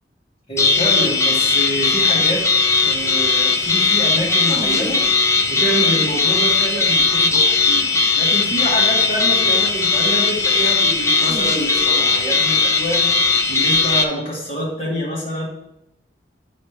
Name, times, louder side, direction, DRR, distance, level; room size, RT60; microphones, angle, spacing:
voice 1, 0.5-2.5 2.8-13.1 13.5-15.5, right 1 dB, 35° left, -6 dB, 2.2 m, -26 dB
sound 1, 0.6-14.0, left 4 dB, 15° left, 0.5 m, -18 dB
9.4 x 4.2 x 3.3 m, 0.85 s
head